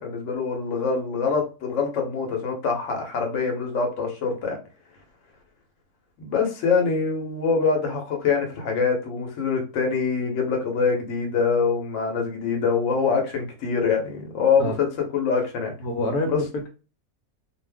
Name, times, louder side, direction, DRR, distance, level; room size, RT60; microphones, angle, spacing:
voice 1, 0.0-4.6 6.2-14.9 15.1-15.7 16.2-16.4, left 5 dB, 60° left, 2 dB, 1.1 m, -24 dB
voice 2, 15.8-16.7, left 1 dB, 80° left, 3 dB, 1.1 m, -27 dB
2.5 x 2.4 x 3.4 m, 0.33 s
omnidirectional pair, 1.6 m